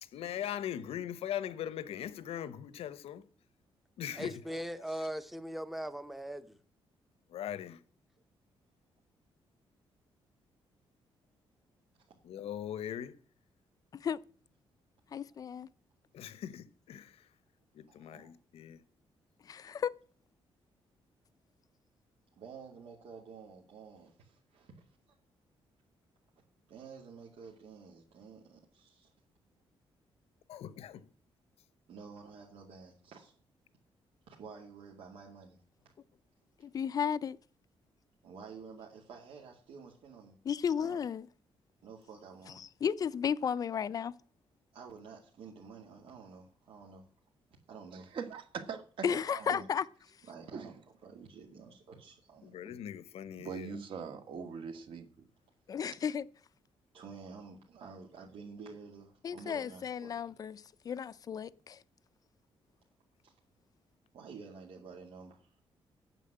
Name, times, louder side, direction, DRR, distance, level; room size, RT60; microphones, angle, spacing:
voice 1, 0.0-3.3 4.0-4.6 7.3-7.8 12.2-13.2 16.1-17.3 17.7-18.8 30.5-31.1 52.4-53.8, left 10 dB, 90° left, 1.0 m, -40 dB
voice 2, 4.1-6.6, equal, ahead, 0.8 m, -39 dB
voice 3, 15.1-15.7 19.5-19.9 36.6-37.4 40.5-41.3 42.6-44.1 49.0-49.8 55.7-56.3 59.2-61.8, left 7 dB, 40° left, 0.5 m, -34 dB
voice 4, 17.9-18.3 22.4-24.9 26.7-29.1 31.9-33.3 34.3-35.6 38.2-40.4 40.6-41.0 41.8-42.6 44.7-47.1 47.7-48.1 49.3-49.6 50.2-52.8 56.9-60.1 63.2-63.3 64.1-65.5, right 5 dB, 80° right, 2.3 m, -50 dB
voice 5, 47.9-49.2 49.5-49.6 50.5-50.7 53.4-55.3, right 6 dB, 60° right, 1.8 m, -41 dB
9.3 x 7.4 x 8.7 m
wide cardioid pair, 170°, 10 cm